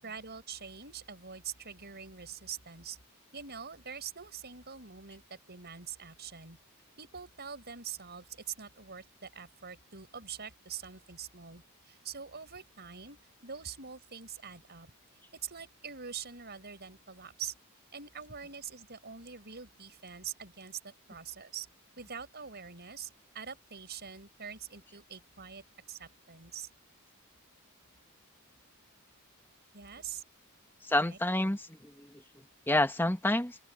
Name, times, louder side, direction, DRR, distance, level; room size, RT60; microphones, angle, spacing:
voice 1, 0.0-3.0 3.3-6.6 7.0-14.9 15.3-17.5 17.9-21.7 22.0-26.7 29.7-30.2 31.0-31.2, right 7 dB, 50° right, 6.8 m, -44 dB
voice 2, 30.8-32.1 32.7-33.6, left 1 dB, 10° left, 1.8 m, -28 dB
open air
head